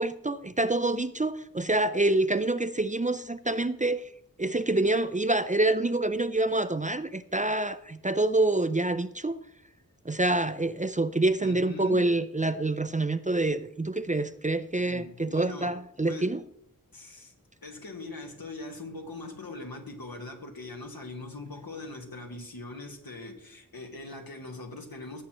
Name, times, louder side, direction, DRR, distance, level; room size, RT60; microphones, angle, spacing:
voice 1, 0.0-4.0 4.4-9.4 10.1-16.4, right 2 dB, 20° right, 0.4 m, -27 dB
voice 2, 11.4-12.1 14.8-15.7 16.1-16.3 16.9-17.3 17.6-25.2, left 2 dB, 80° left, 1.6 m, -41 dB
17.0 x 7.5 x 3.0 m
wide cardioid pair, 45°, 35 cm